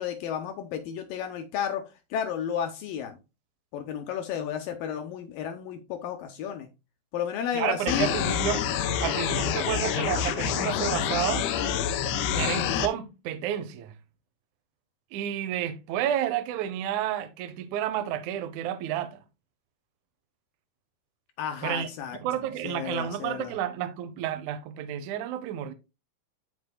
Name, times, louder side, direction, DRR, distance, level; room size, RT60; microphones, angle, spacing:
voice 1, 0.0-1.8 2.1-3.2 3.7-6.7 7.1-8.1 21.4-22.2 22.6-23.5, left 8 dB, 75° left, 2.2 m, -32 dB
voice 2, 7.5-8.6 9.0-11.5 12.3-14.0 15.1-19.2 21.6-21.9 22.2-25.7, right 11 dB, 80° right, 1.7 m, -30 dB
sound 1, 7.9-12.9, left 8 dB, 90° left, 2.8 m, -27 dB
13.0 x 4.5 x 2.2 m
omnidirectional pair, 4.6 m